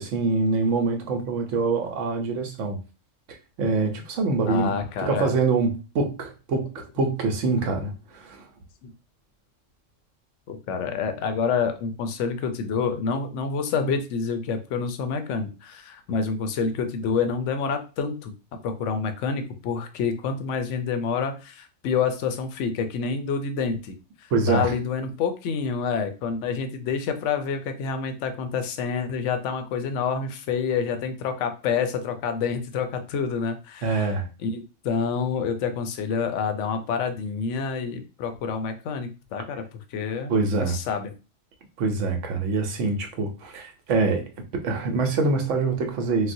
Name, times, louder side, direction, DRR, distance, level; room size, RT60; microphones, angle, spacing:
voice 1, 0.0-2.8 3.3-4.7 5.0-8.5 24.3-24.7 33.8-34.3 40.3-40.8 41.8-44.2 44.6-46.3, right 3 dB, 75° right, 1.0 m, -25 dB
voice 2, 4.5-5.3 8.8-8.9 10.5-18.3 18.6-39.6 39.9-41.1, left 5 dB, 75° left, 0.9 m, -28 dB
4.0 x 2.1 x 2.6 m
omnidirectional pair, 1.3 m